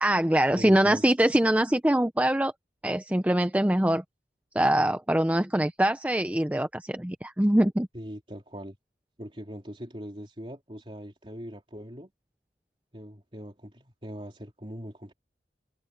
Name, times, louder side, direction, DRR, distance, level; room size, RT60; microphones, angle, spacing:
voice 1, 0.0-2.5 2.8-4.0 4.5-7.9, right 1 dB, 10° right, 0.5 m, -23 dB
voice 2, 0.5-1.0 7.9-8.8 9.2-12.1 12.9-15.1, equal, 30° right, 3.8 m, -41 dB
head